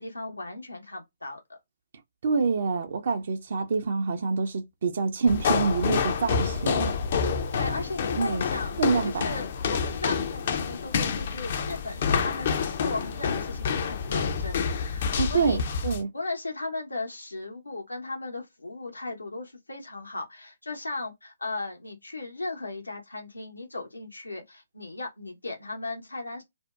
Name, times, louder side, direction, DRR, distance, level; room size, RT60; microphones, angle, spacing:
voice 1, 0.0-1.4 7.5-15.6 16.1-26.4, left 2 dB, 85° left, 0.9 m, -36 dB
voice 2, 2.2-6.9 8.2-8.4 8.8-9.2 15.2-16.1, right 4 dB, 50° right, 0.5 m, -26 dB
sound 1, 5.3-16.0, left 6 dB, 45° left, 0.5 m, -28 dB
2.6 x 2.1 x 2.3 m
figure-of-eight pair, 140°, 0 cm